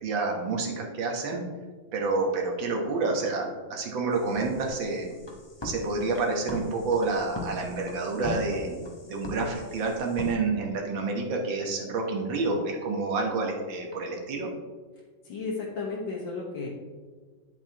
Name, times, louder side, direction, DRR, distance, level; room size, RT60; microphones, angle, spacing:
voice 1, 0.0-1.4 1.9-5.1 5.6-8.8 9.0-14.5, right 3 dB, 75° right, 1 dB, 1.9 m, -29 dB
sound 1, 4.1-10.3, left 2 dB, 30° left, 0.5 m, -40 dB
voice 2, 15.2-16.7, left 4 dB, 80° left, -5 dB, 2.0 m, -33 dB
9.1 x 7.2 x 2.9 m, 1.5 s
omnidirectional pair, 2.1 m